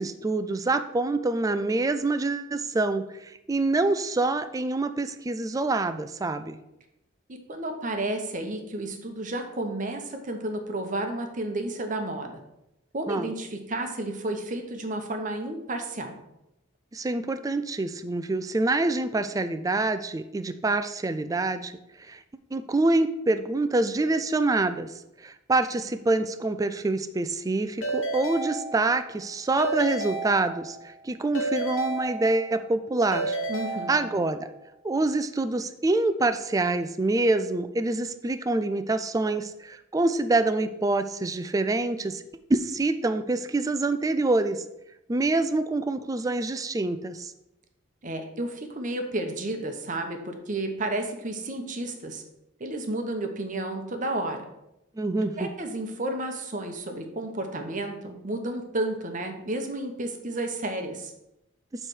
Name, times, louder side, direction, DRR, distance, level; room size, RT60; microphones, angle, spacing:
voice 1, 0.0-6.6 13.1-13.3 16.9-21.8 22.1-22.2 22.5-24.9 25.2-33.4 33.9-34.5 34.8-42.2 42.5-44.6 45.1-47.3 55.0-55.5, right 2 dB, 15° right, 10 dB, 0.3 m, -26 dB
voice 2, 7.3-12.4 12.9-16.1 33.5-34.1 48.0-52.2 52.6-54.5 55.4-61.1, right 2 dB, 40° right, 5 dB, 0.9 m, -32 dB
Keyboard (musical) / Ringtone, 27.8-29.2 29.6-30.9 31.3-32.7 33.1-34.5, right 2 dB, 70° left, 1.2 m, -32 dB
7.3 x 3.3 x 6.2 m, 0.86 s
head